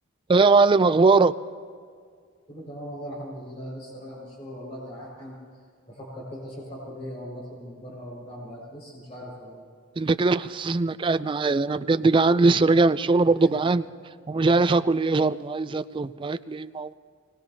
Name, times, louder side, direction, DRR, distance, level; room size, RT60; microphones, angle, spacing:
voice 1, 0.3-1.3 10.0-13.8 14.3-16.9, right 3 dB, 25° right, 13 dB, 0.3 m, -21 dB
voice 2, 2.5-5.3 5.9-9.6, equal, 30° left, -5 dB, 5.1 m, -39 dB
24.5 x 20.0 x 2.8 m, 2.1 s
head